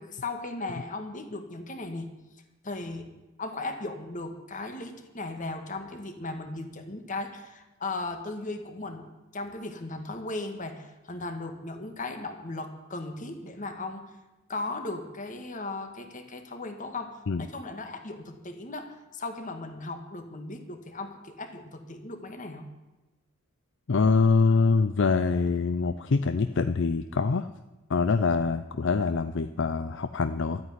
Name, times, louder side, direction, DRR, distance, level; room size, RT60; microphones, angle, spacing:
voice 1, 0.0-2.1 2.6-3.1 3.4-9.1 9.3-14.0 14.5-17.1 17.4-22.7, left 2 dB, 35° left, 6 dB, 1.8 m, -37 dB
voice 2, 23.9-27.5 27.9-30.6, left 4 dB, 60° left, 11 dB, 0.5 m, -24 dB
13.0 x 9.4 x 9.6 m, 1.1 s
head